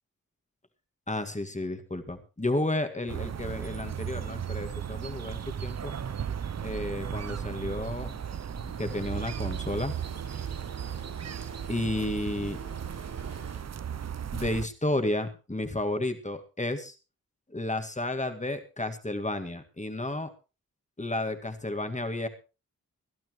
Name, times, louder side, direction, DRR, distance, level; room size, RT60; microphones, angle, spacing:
voice 1, 1.1-5.9 6.6-8.2 8.8-10.0 10.4-10.5 11.7-12.6 14.3-16.9 17.5-20.3 21.0-22.3, left 1 dB, 20° left, 7 dB, 2.1 m, -32 dB
sound 1, 3.1-14.7, right 8 dB, 50° right, 0.6 m, -36 dB
sound 2, 3.5-4.8 5.1-6.8 7.1-7.2 8.0-13.5, right 3 dB, 90° right, 6.8 m, -48 dB
22.0 x 12.0 x 3.1 m, 0.31 s
cardioid pair, 50°, 33 cm